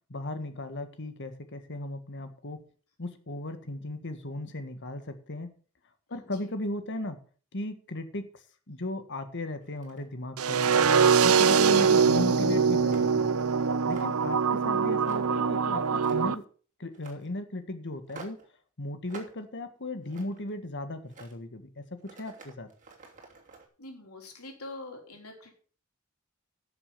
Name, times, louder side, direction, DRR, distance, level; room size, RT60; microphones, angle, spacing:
voice 1, 0.1-2.6 3.0-5.6 6.1-7.2 7.5-8.3 8.7-10.8 11.2-13.3 13.9-16.4 16.8-18.4 18.8-22.7, left 1 dB, 55° left, 9 dB, 1.7 m, -36 dB
voice 2, 6.1-6.4 23.8-25.5, left 2 dB, 90° left, 2 dB, 3.7 m, -44 dB
sound 1, 9.6-10.1 10.7-11.0 11.5-12.1 12.9-13.2 13.6-14.3 15.0-15.5 15.8-16.4 16.9-17.3 18.1-18.5 19.1-19.4 19.8-20.5 21.0-21.4 22.0-23.7, right 4 dB, 35° right, 3.0 m, -48 dB
sound 2, 10.4-16.4, right 6 dB, 80° right, 0.7 m, -23 dB
11.0 x 6.9 x 6.8 m, 0.41 s
head